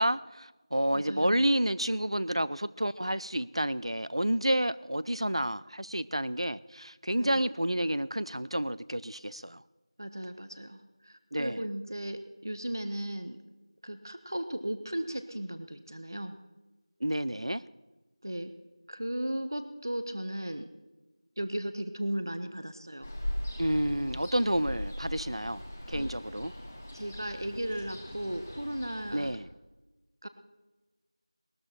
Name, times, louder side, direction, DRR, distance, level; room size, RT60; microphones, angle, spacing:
voice 1, 0.0-9.6 11.3-11.6 17.0-17.6 23.6-26.5 29.1-29.5, right 1 dB, 65° right, 18 dB, 0.6 m, -30 dB
voice 2, 0.9-1.4 7.1-7.4 10.0-13.4 13.8-16.4 18.2-18.5 18.9-20.7 21.4-23.1 25.9-26.1 26.9-29.3 30.2-30.3, right 1 dB, 40° right, 10 dB, 0.9 m, -36 dB
Ocean, 23.0-29.3, left 1 dB, 10° left, 0.9 m, -39 dB
19.5 x 13.0 x 4.3 m, 1.1 s
figure-of-eight pair, 175°, 3 cm